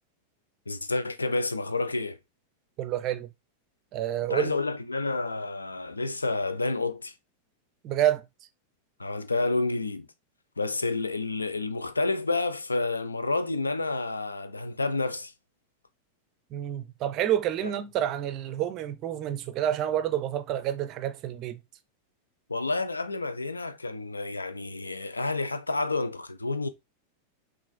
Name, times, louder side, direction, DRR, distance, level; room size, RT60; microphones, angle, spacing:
voice 1, 0.7-2.2 4.3-7.1 9.0-10.1 10.6-15.3 17.6-17.7 22.5-26.7, left 3 dB, 80° left, 0.4 m, -29 dB
voice 2, 2.8-3.3 3.9-4.6 7.8-8.3 16.5-21.6, right 11 dB, 35° right, 0.5 m, -28 dB
5.5 x 2.5 x 2.2 m
figure-of-eight pair, 90°, 0 cm